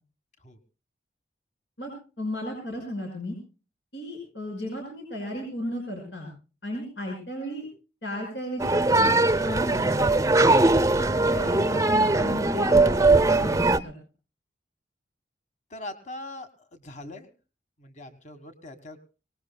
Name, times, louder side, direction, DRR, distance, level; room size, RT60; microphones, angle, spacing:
voice 1, 1.8-3.4 3.9-6.3 6.6-7.7 8.0-9.9 10.6-14.0, equal, 85° left, 1 dB, 5.6 m, -35 dB
sound 1, 8.6-13.8, right 2 dB, 20° right, 0.6 m, -21 dB
voice 2, 15.7-17.3 17.8-19.0, left 1 dB, 45° left, 9 dB, 1.6 m, -41 dB
23.5 x 19.5 x 2.3 m, 0.35 s
head